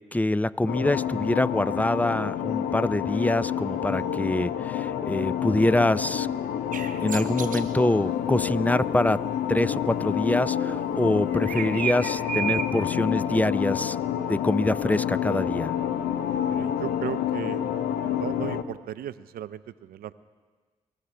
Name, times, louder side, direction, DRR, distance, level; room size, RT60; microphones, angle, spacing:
voice 1, 0.1-6.3 7.0-9.2 9.5-14.0 14.3-15.7, left 1 dB, 10° left, 18 dB, 0.4 m, -25 dB
sound 1, 0.7-18.6, left 9 dB, 85° left, 0.6 m, -28 dB
sound 2, 6.7-7.7 11.3-12.8, right 8 dB, 60° right, 0.9 m, -32 dB
voice 2, 16.4-17.6 18.0-20.1, right 11 dB, 80° right, 15 dB, 0.5 m, -36 dB
23.5 x 13.0 x 3.4 m, 1.4 s
supercardioid pair, 40°, 15 cm